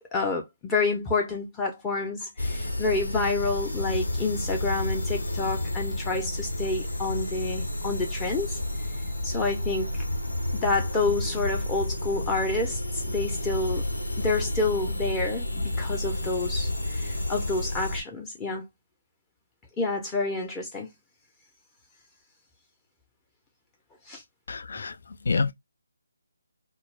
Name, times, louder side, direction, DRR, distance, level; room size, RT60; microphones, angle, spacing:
voice 1, 0.0-8.6 9.2-10.0 10.5-13.8 14.2-18.7 19.8-20.9 24.1-24.2, left 3 dB, 15° left, 0.6 m, -29 dB
sound 1, 2.4-18.0, left 1 dB, 85° left, 0.9 m, -30 dB
voice 2, 24.5-24.9 25.3-25.5, left 4 dB, 65° left, 0.4 m, -26 dB
2.2 x 2.0 x 3.1 m
figure-of-eight pair, 155°, 0 cm